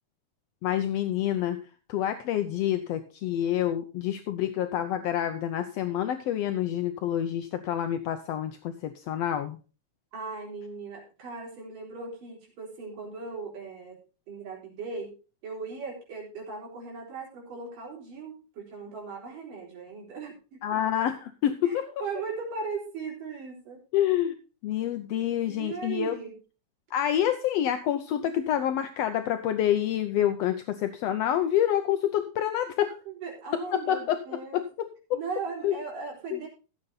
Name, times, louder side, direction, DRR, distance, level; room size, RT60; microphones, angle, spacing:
voice 1, 0.6-1.6 1.9-9.6 20.6-21.9 23.9-24.3 24.6-26.1 26.9-33.0 33.5-34.2 34.5-35.2 35.6-35.7 36.3-36.4, left 11 dB, 80° left, 8 dB, 1.5 m, -27 dB
voice 2, 10.1-14.0 14.3-15.1 15.4-20.8 21.6-21.7 22.0-23.8 25.5-26.4 33.1-34.6 35.1-36.5, right 4 dB, 80° right, -1 dB, 5.6 m, -38 dB
15.5 x 7.8 x 4.0 m, 0.34 s
omnidirectional pair, 3.8 m